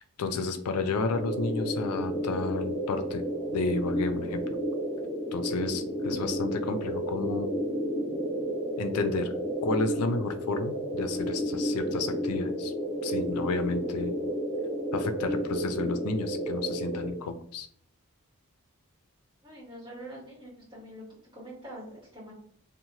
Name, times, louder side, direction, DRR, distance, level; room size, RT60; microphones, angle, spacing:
voice 1, 0.0-3.2 3.5-4.6 5.3-7.5 8.8-9.3 9.6-12.7 13.0-14.1 14.9-17.7, left 3 dB, 85° left, 9 dB, 0.4 m, -31 dB
sound 1, 1.1-17.1, equal, 35° left, 0.8 m, -32 dB
voice 2, 19.4-21.0 21.3-22.3, right 1 dB, 20° right, -8 dB, 1.5 m, -44 dB
2.8 x 2.0 x 2.9 m, 0.62 s
head